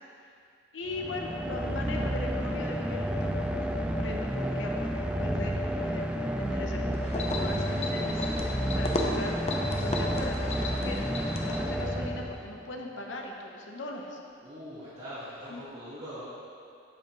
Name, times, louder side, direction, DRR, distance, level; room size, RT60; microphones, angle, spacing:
voice 1, 0.7-9.3 9.7-14.2 15.5-15.7, left 2 dB, 75° left, 1 dB, 0.8 m, -39 dB
sound 1, 0.9-12.8, equal, 5° right, 0.3 m, -31 dB
sound 2, 6.9-11.8, left 2 dB, 35° left, 0.7 m, -34 dB
voice 2, 14.4-16.2, equal, 35° right, -12 dB, 1.5 m, -42 dB
8.9 x 7.5 x 3.0 m, 2.4 s
head